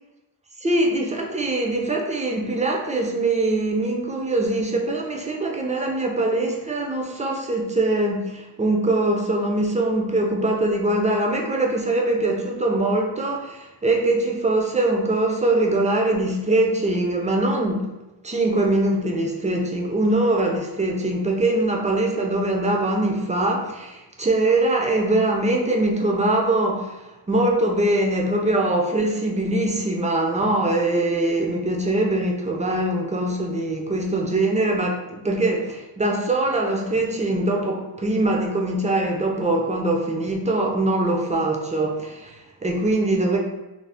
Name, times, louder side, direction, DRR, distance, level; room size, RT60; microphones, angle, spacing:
voice 1, 0.6-17.9 18.2-43.4, right 2 dB, 20° right, 1 dB, 0.3 m, -22 dB
2.5 x 2.0 x 3.3 m, 1.0 s
wide cardioid pair, 105°, 41 cm